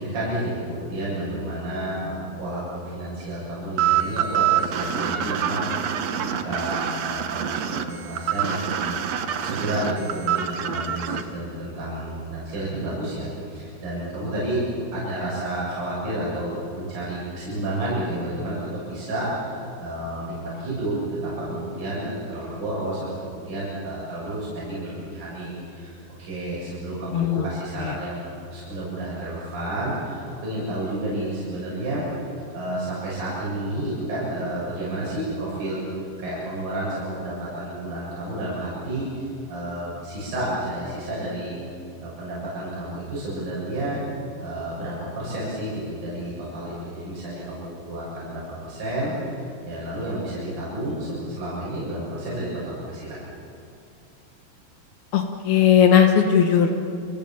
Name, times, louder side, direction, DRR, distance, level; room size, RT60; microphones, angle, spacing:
voice 1, 0.0-9.0 9.4-14.6 14.9-25.9 26.2-32.0 32.5-35.8 36.2-41.6 42.0-44.0 44.4-53.2, right 1 dB, 55° right, -8 dB, 8.8 m, -30 dB
sound 1, 3.8-11.2, right 10 dB, 75° right, 1.5 m, -25 dB
voice 2, 27.1-27.5 27.8-27.9 55.1-56.7, left 8 dB, 70° left, 4 dB, 3.2 m, -18 dB
29.5 x 27.5 x 7.3 m, 2.8 s
omnidirectional pair, 4.9 m